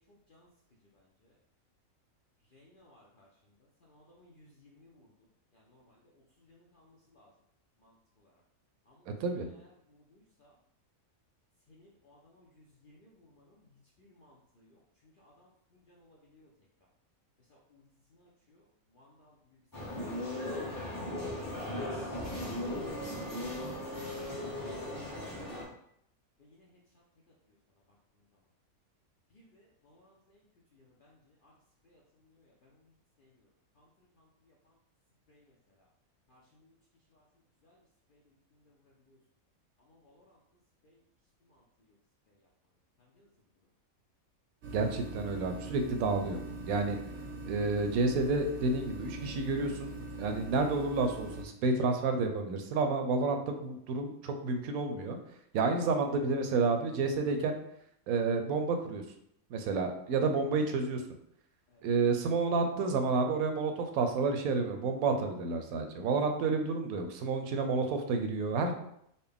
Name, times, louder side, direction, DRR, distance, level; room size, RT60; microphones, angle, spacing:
voice 1, 2.5-3.3 3.9-4.5 4.8-5.0 6.7-7.3 10.4-10.5 11.7-12.5 12.8-13.1 14.0-14.3 15.2-15.5 16.1-16.5 19.0-19.3 19.9-20.2 20.9-21.0 21.3-21.4 23.0-23.1 24.5-24.7 26.6-26.8 29.5-30.0 35.3-35.4 36.3-36.4 40.0-40.2, left 1 dB, 60° left, -3 dB, 0.5 m, -61 dB
sound 1, 19.7-25.6, left 1 dB, 20° left, 0.7 m, -37 dB
sound 2, 44.6-51.4, right 1 dB, 60° right, 0.8 m, -42 dB
voice 2, 44.7-46.4 46.7-47.0 47.5-49.9 50.2-55.2 55.5-57.6 58.1-59.0 59.5-61.0 61.8-68.7, right 3 dB, 80° right, 5 dB, 1.0 m, -30 dB
4.1 x 2.2 x 3.4 m, 0.73 s
omnidirectional pair, 1.5 m